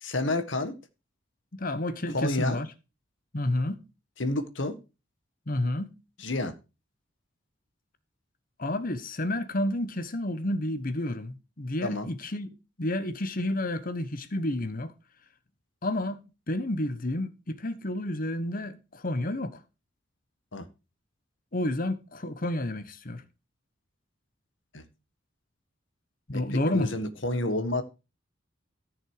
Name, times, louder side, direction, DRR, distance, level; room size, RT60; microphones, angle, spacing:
voice 1, 0.0-0.7 2.1-2.6 4.2-4.7 6.2-6.5 11.8-12.1 20.5-20.7 24.7-24.8 26.3-26.4 26.7-27.8, left 2 dB, 70° left, 1.7 m, -29 dB
voice 2, 1.5-2.7 3.3-3.8 5.5-6.0 8.6-12.5 12.8-14.9 15.8-19.6 21.5-23.2 26.3-26.9, left 1 dB, 45° left, 1.1 m, -30 dB
14.5 x 6.4 x 4.9 m
head